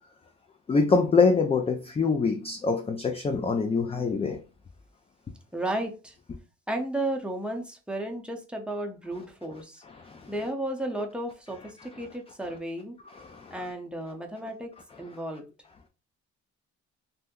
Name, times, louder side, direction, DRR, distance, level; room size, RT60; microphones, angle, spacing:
voice 1, 0.7-4.4 10.0-10.3 13.1-13.5, left 4 dB, 20° left, 0.3 m, -25 dB
voice 2, 5.5-6.1 6.7-9.8 10.3-13.0 13.5-15.5, right 1 dB, 5° right, 0.7 m, -33 dB
2.6 x 2.1 x 3.6 m
cardioid pair, 90°, 30 cm